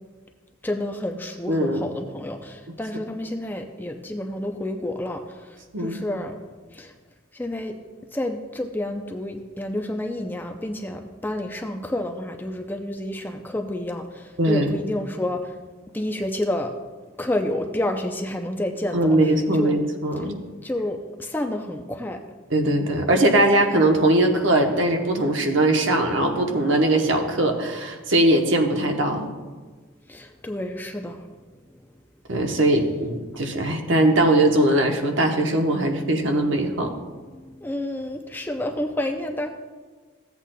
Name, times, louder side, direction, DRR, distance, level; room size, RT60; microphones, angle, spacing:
voice 1, 0.6-6.3 6.7-6.9 7.3-7.8 8.1-15.6 15.9-16.7 17.2-19.2 19.5-19.8 20.2-20.3 20.6-22.2 30.1-31.2 37.3-39.5, left 1 dB, 10° left, 4 dB, 0.4 m, -29 dB
voice 2, 1.5-1.8 5.7-6.0 14.4-14.7 18.9-20.4 22.5-29.3 32.3-36.9, right 1 dB, 65° right, 3 dB, 1.0 m, -20 dB
14.5 x 8.2 x 2.2 m, 1.4 s
head